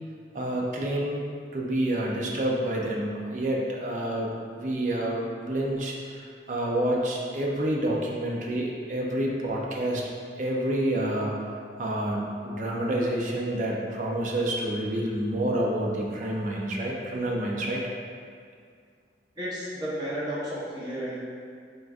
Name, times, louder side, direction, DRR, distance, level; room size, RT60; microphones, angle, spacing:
voice 1, 0.3-1.2 1.5-5.9 6.5-10.0 10.4-11.3 11.8-17.8, right 1 dB, 45° right, -2 dB, 0.5 m, -28 dB
voice 2, 19.4-21.2, equal, 25° right, -8 dB, 0.8 m, -32 dB
3.8 x 3.5 x 2.4 m, 2.2 s
head